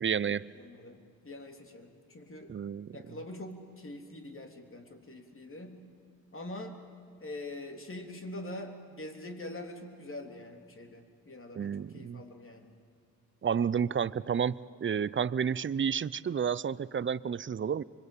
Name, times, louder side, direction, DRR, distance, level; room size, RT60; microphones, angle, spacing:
voice 1, 0.0-0.5 2.5-2.9 11.6-12.2 13.4-14.5 14.8-17.8, right 7 dB, 30° right, 19 dB, 0.7 m, -30 dB
voice 2, 0.5-2.5 2.9-5.8 6.3-6.8 7.2-12.7, left 1 dB, 35° left, 4 dB, 3.6 m, -44 dB
25.5 x 22.0 x 8.8 m, 2.2 s
hypercardioid pair, 50°, 37 cm